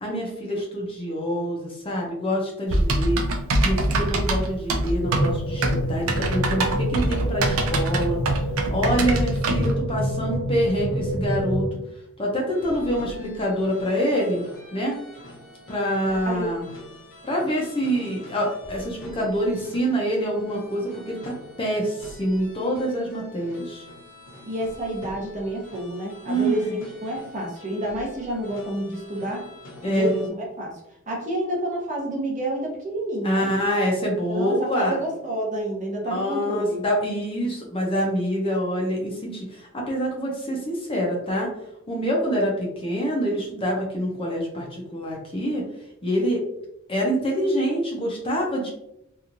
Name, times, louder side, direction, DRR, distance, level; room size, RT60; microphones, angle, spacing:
voice 1, 0.0-3.2 3.6-8.2 8.7-11.6 12.2-14.4 14.7-15.0 15.7-16.7 17.2-23.8 26.3-26.8 29.8-30.1 33.2-35.0 36.0-41.5 41.9-45.6 46.0-46.4 46.9-48.7, equal, 25° left, -1 dB, 0.6 m, -26 dB
Typing, 2.7-9.7, right 1 dB, 85° right, 0.5 m, -24 dB
sound 1, 5.0-11.7, equal, 85° left, 0.6 m, -27 dB
sound 2, 12.5-30.3, left 1 dB, 60° left, 1.0 m, -45 dB
voice 2, 24.4-29.4 29.9-30.8 31.1-33.5 34.3-36.8, right 1 dB, 35° right, -2 dB, 0.8 m, -29 dB
2.9 x 2.4 x 2.5 m, 0.82 s
head